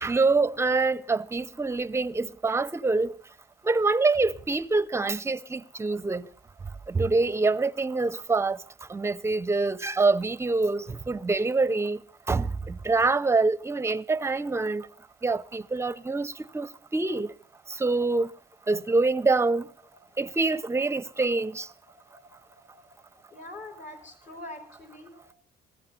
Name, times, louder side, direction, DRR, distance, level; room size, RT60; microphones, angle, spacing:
voice 1, 0.0-3.2 3.6-6.3 6.9-8.6 8.9-12.0 12.3-14.9 15.2-17.3 17.7-18.3 18.7-19.7 20.2-21.7, right 3 dB, 15° right, 0.6 m, -25 dB
voice 2, 21.9-23.0 23.3-25.3, left 2 dB, 50° left, 4.6 m, -45 dB
20.0 x 15.0 x 4.0 m
cardioid pair, 110°, 17 cm